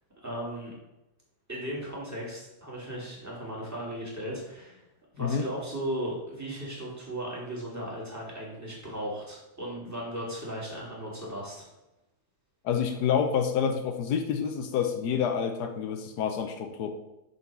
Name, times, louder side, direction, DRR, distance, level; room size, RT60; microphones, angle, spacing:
voice 1, 0.2-0.7 1.5-4.8 5.1-11.7, right 1 dB, 10° right, -5 dB, 2.7 m, -36 dB
voice 2, 12.6-16.9, left 7 dB, 85° left, 6 dB, 1.3 m, -28 dB
6.6 x 4.4 x 5.9 m, 0.92 s
omnidirectional pair, 1.7 m